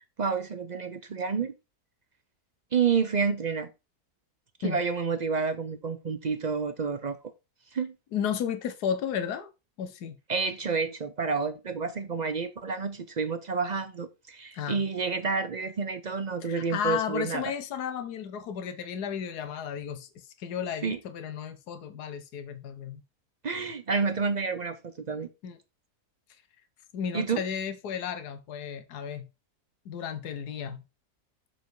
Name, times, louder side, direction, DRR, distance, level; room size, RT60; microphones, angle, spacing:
voice 1, 0.2-1.5 2.7-3.7 4.6-7.2 7.7-7.9 10.3-17.5 20.8-21.0 23.4-25.3 27.1-27.4, right 5 dB, 60° right, 0.4 m, -29 dB
voice 2, 8.1-9.5 9.8-10.2 14.5-14.8 16.4-20.1 20.4-23.0 25.4-25.6 26.9-29.3 29.8-30.8, left 8 dB, 75° left, 1.5 m, -33 dB
6.9 x 4.5 x 4.7 m
omnidirectional pair, 1.7 m